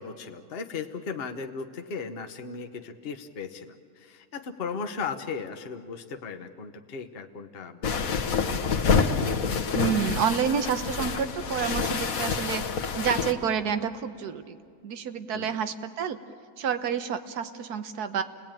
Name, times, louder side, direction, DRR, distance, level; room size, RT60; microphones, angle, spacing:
voice 1, 0.0-8.1 15.3-15.6, left 5 dB, 45° left, 5 dB, 1.1 m, -37 dB
sound 1, 7.8-13.3, left 5 dB, 65° left, 1.6 m, -27 dB
voice 2, 9.7-14.6 14.8-16.2 16.6-18.2, right 7 dB, 85° right, 10 dB, 1.5 m, -29 dB
29.0 x 20.0 x 8.9 m, 2.3 s
omnidirectional pair, 1.6 m